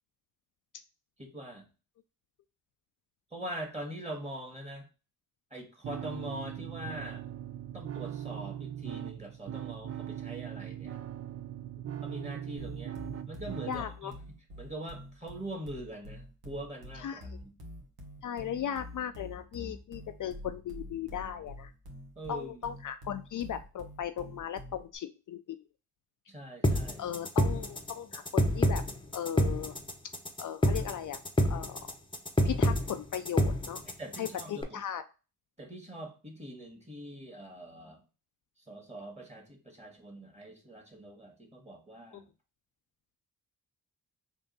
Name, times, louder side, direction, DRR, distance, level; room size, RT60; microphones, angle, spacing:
voice 1, 1.2-1.6 3.3-4.9 5.5-7.2 7.7-11.0 12.0-12.9 13.3-17.5 22.1-22.7 26.3-27.1 33.8-34.8 35.6-38.0 38.7-42.3, right 1 dB, 20° right, 1 dB, 1.7 m, -43 dB
sound 1, 5.8-13.8, right 11 dB, 40° right, 0.4 m, -40 dB
sound 2, 12.6-24.9, left 1 dB, 75° right, 1.2 m, -46 dB
voice 2, 13.7-14.1 17.0-17.4 18.2-21.7 22.3-25.6 27.0-28.8 29.1-29.7 30.4-31.2 31.5-31.9 32.4-33.8 34.2-35.0 42.1-42.2, left 9 dB, 55° left, 8 dB, 0.4 m, -37 dB
sound 3, 26.6-34.6, left 1 dB, 15° left, 0.8 m, -27 dB
3.5 x 2.6 x 3.9 m, 0.32 s
cardioid pair, 60°, 38 cm